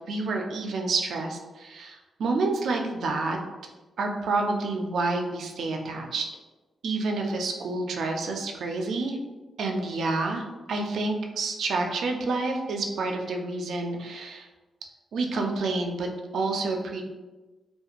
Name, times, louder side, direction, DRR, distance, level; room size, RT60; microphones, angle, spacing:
voice 1, 0.1-3.4 4.0-6.3 6.8-9.2 9.6-14.5 15.1-17.0, right 3 dB, 75° right, 2 dB, 0.3 m, -29 dB
2.9 x 2.1 x 2.4 m, 1.2 s
cardioid pair, 115°, 0 cm